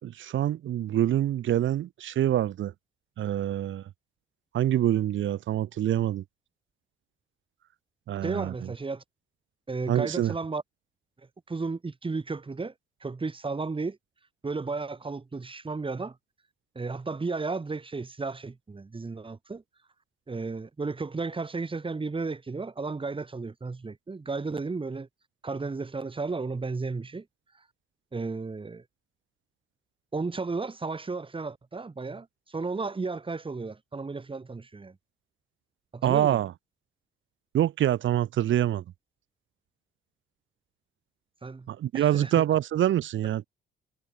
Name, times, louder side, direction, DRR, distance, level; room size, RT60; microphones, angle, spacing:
voice 1, 0.0-2.7 3.2-3.8 4.5-6.2 8.1-8.5 9.9-10.3 36.0-36.5 37.5-38.8 41.7-43.5, right 12 dB, 75° right, 6.3 m, -25 dB
voice 2, 8.2-9.0 9.7-10.6 11.5-12.7 13.0-14.0 14.4-16.2 16.7-19.6 20.3-25.1 25.4-27.2 28.1-28.8 30.1-34.9 35.9-36.4 41.4-41.7 41.9-42.3, right 4 dB, 25° right, 7.9 m, -33 dB
cardioid pair, 90°, 20 cm